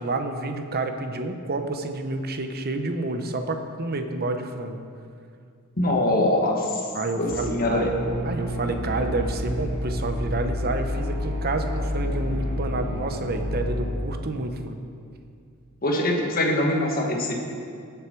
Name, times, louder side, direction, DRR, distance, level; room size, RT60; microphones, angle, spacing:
voice 1, 0.0-4.8 6.9-7.9 8.2-14.8, right 2 dB, 45° right, 6 dB, 0.9 m, -29 dB
voice 2, 5.8-6.8 7.2-7.9 15.8-17.3, left 1 dB, 40° left, 0 dB, 1.7 m, -23 dB
sound 1, 7.3-13.9, left 1 dB, 60° right, 3.5 m, -29 dB
18.5 x 7.1 x 4.6 m, 2.3 s
head